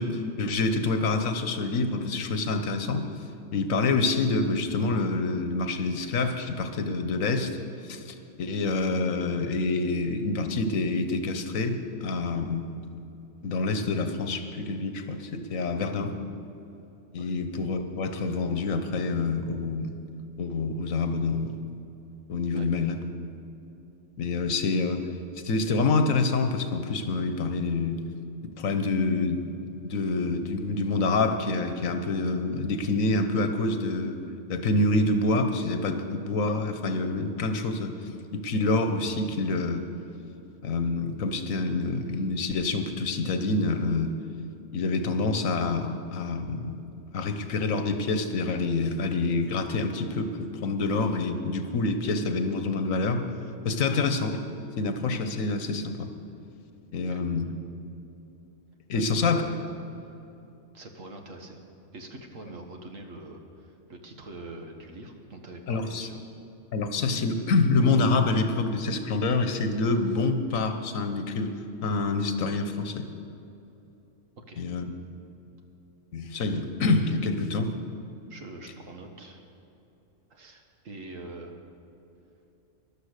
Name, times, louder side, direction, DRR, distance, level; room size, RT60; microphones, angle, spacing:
voice 1, 0.0-3.1 3.5-7.6 7.8-12.6 13.4-16.1 17.1-19.9 20.4-21.6 22.3-23.0 24.2-25.0 25.4-28.0 28.5-29.4 29.8-34.2 34.5-39.9 40.6-44.1 44.7-46.7 47.1-53.2 53.6-54.4 54.8-56.1 56.9-57.5 58.9-59.4 65.7-66.1 66.7-71.5 71.8-73.1 74.6-74.9 76.1-77.8, left 3 dB, 80° left, 7 dB, 1.4 m, -27 dB
voice 2, 58.9-59.6 60.7-61.6 61.9-66.2 74.4-74.6 78.3-79.4 80.3-81.5, right 2 dB, 75° right, 3 dB, 1.8 m, -44 dB
14.0 x 11.5 x 6.6 m, 2.9 s
omnidirectional pair, 1.4 m